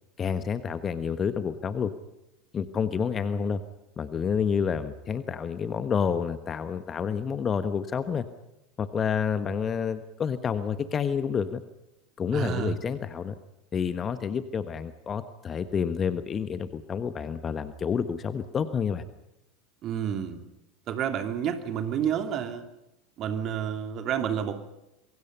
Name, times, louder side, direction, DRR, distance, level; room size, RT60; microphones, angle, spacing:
voice 1, 0.2-1.9 2.5-3.6 4.0-8.3 8.8-11.6 12.2-13.3 13.7-19.0, left 6 dB, 30° left, 11 dB, 1.4 m, -29 dB
voice 2, 12.3-12.8 19.8-20.4 20.9-22.6 23.2-24.6, right 8 dB, 40° right, 7 dB, 2.8 m, -29 dB
26.5 x 23.5 x 5.6 m, 0.90 s
figure-of-eight pair, 75°, 0 cm